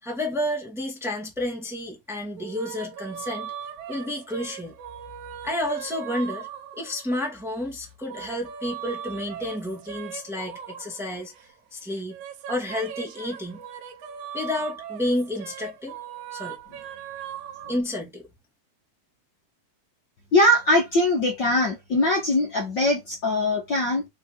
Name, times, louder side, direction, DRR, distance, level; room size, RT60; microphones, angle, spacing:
voice 1, 0.0-3.5 3.9-4.7 5.4-6.5 6.7-11.3 11.7-12.2 12.5-13.6 14.3-16.0 16.3-16.6 17.7-18.3, left 1 dB, ahead, 1.1 m, -30 dB
sound 1, 2.4-7.3 7.8-11.5 11.9-17.8, right 9 dB, 85° right, 1.4 m, -39 dB
voice 2, 20.3-24.1, left 1 dB, 90° left, 0.9 m, -21 dB
5.4 x 4.7 x 3.8 m
omnidirectional pair, 4.2 m